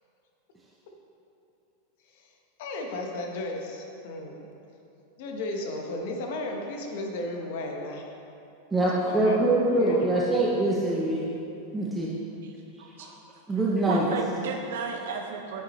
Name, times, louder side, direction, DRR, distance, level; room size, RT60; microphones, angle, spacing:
voice 1, 2.6-4.4 5.2-8.1 8.9-9.4 9.7-10.3, left 2 dB, 60° left, 1 dB, 1.1 m, -34 dB
voice 2, 8.7-11.2 11.7-12.1 13.0-13.1 13.5-14.0, right 2 dB, 10° right, -5 dB, 0.6 m, -24 dB
voice 3, 12.8-13.1 13.9-15.6, right 5 dB, 80° right, 2 dB, 0.6 m, -34 dB
8.2 x 7.9 x 3.1 m, 2.8 s
supercardioid pair, 155°, 0 cm